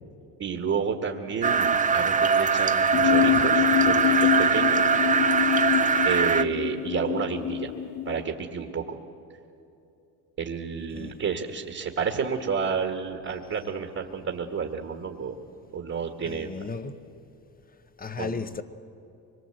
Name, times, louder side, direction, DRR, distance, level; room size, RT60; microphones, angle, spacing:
voice 1, 0.4-5.0 6.0-7.7 8.1-9.0 10.4-15.4 15.7-16.5 18.2-18.4, right 6 dB, 35° right, 1.9 m, -30 dB
sound 1, 1.4-6.4, right 5 dB, 20° right, 0.8 m, -22 dB
sound 2, 2.9-8.2, left 11 dB, 60° left, 1.1 m, -26 dB
voice 2, 16.2-17.1 18.0-18.6, left 4 dB, 20° left, 1.0 m, -35 dB
24.5 x 22.5 x 8.0 m
cardioid pair, 110°, 40 cm